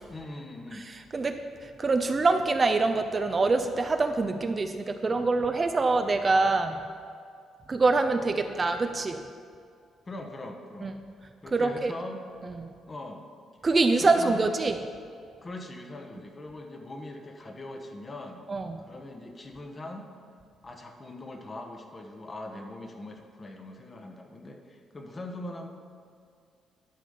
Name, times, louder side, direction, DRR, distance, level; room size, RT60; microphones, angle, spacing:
voice 1, 0.1-0.9 10.1-10.9 11.4-12.2 12.9-13.2 14.0-14.5 15.4-18.4 18.8-20.1 20.6-25.7, left 1 dB, 30° left, 3 dB, 1.1 m, -41 dB
voice 2, 0.7-6.8 7.7-9.2 10.8-10.9 11.5-11.9 12.4-12.7 13.6-14.8 18.5-18.8, right 3 dB, 30° right, 7 dB, 0.5 m, -25 dB
11.5 x 5.0 x 5.6 m, 2.2 s
cardioid pair, 90°, 0 cm